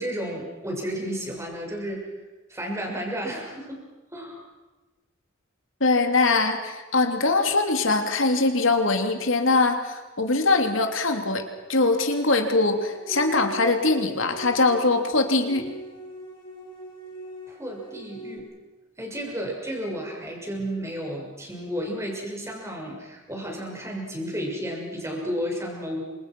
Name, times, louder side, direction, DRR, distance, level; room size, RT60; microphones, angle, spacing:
voice 1, 0.0-2.1 2.5-3.8 4.1-4.4 17.5-18.5 19.0-26.0, equal, 15° right, 0 dB, 6.7 m, -32 dB
voice 2, 5.8-15.6, left 3 dB, 70° left, 5 dB, 3.1 m, -22 dB
sound 1, 12.6-18.4, right 2 dB, 20° left, 6.0 m, -41 dB
29.5 x 26.5 x 6.3 m, 1.2 s
head